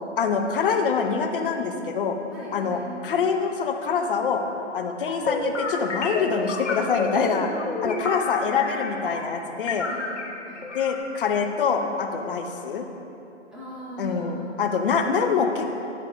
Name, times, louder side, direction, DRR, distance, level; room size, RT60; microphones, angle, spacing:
voice 1, 0.2-2.2 2.5-4.4 4.7-7.5 7.8-9.9 10.7-12.8 14.0-15.8, left 6 dB, 45° left, 4 dB, 0.7 m, -25 dB
voice 2, 2.3-2.9 7.1-8.3 9.6-10.6 13.5-14.6, equal, ahead, -11 dB, 1.6 m, -39 dB
sound 1, 5.0-9.4 9.7-11.0, left 3 dB, 75° left, 1.0 m, -30 dB
9.8 x 3.7 x 4.6 m, 2.8 s
figure-of-eight pair, 130°, 36 cm